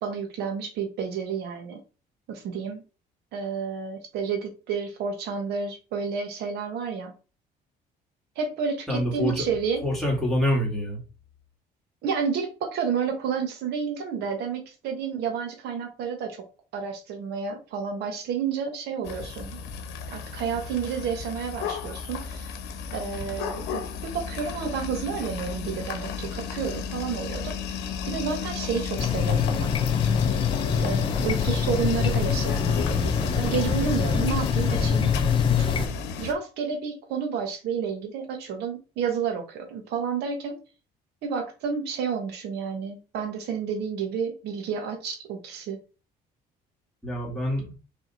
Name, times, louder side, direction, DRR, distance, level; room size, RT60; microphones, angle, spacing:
voice 1, 0.0-1.8 2.3-2.8 3.3-7.1 8.4-9.8 12.0-16.4 16.7-19.6 20.1-22.5 22.9-27.6 28.0-29.7 30.8-35.1 35.6-35.7 36.2-40.6 41.2-45.8, right 6 dB, 80° right, 4 dB, 1.1 m, -30 dB
voice 2, 8.9-9.4 9.8-11.0 47.0-47.7, equal, ahead, -4 dB, 2.2 m, -26 dB
sound 1, 19.0-36.3, left 6 dB, 85° left, 0.8 m, -34 dB
sound 2, 29.0-35.9, left 6 dB, 30° left, 0.5 m, -24 dB
3.5 x 3.4 x 4.2 m, 0.34 s
cardioid pair, 110°, 17 cm